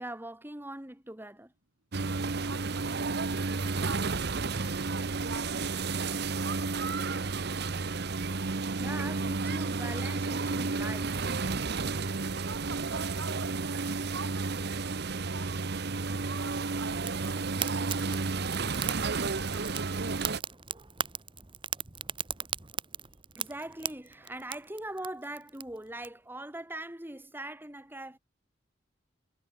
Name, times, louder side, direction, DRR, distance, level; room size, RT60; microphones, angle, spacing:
voice 1, 0.0-1.5 8.8-11.2 23.4-28.2, right 1 dB, 10° right, 2.1 m, -41 dB
sound 1, 1.9-20.4, right 4 dB, 60° right, 1.0 m, -32 dB
voice 2, 2.4-7.6 12.2-18.0 18.5-19.9, right 4 dB, 90° right, 3.1 m, -47 dB
Fire, 17.0-26.1, right 7 dB, 25° right, 1.4 m, -39 dB
head